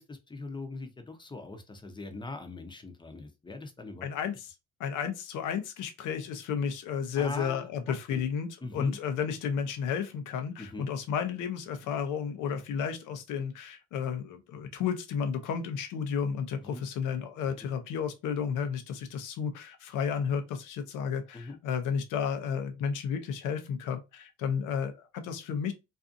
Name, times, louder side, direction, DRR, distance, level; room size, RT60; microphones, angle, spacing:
voice 1, 0.0-4.1 7.2-7.7 8.1-8.3 8.6-9.0 10.6-10.9 16.6-16.8 17.6-17.7 21.3-21.6, left 2 dB, 15° left, 0.6 m, -41 dB
voice 2, 4.0-4.5 4.8-25.7, left 7 dB, 90° left, 0.6 m, -32 dB
2.5 x 2.4 x 2.5 m
cardioid pair, 90°, 30 cm